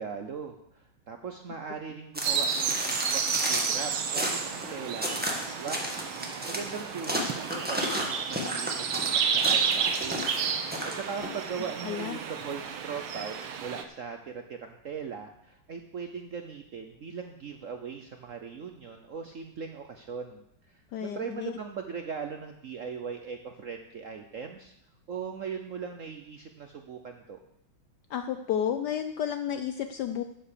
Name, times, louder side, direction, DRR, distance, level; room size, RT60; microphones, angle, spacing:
voice 1, 0.0-24.7 25.1-27.4, right 6 dB, 65° right, 5 dB, 0.8 m, -39 dB
sound 1, 2.1-11.4, equal, 5° right, 1.4 m, -33 dB
sound 2, 2.2-13.8, right 7 dB, 90° right, 1.8 m, -31 dB
voice 2, 11.8-12.2 20.9-21.5 28.1-30.2, left 9 dB, 75° left, 8 dB, 0.9 m, -31 dB
9.8 x 8.1 x 6.6 m, 0.78 s
omnidirectional pair, 2.3 m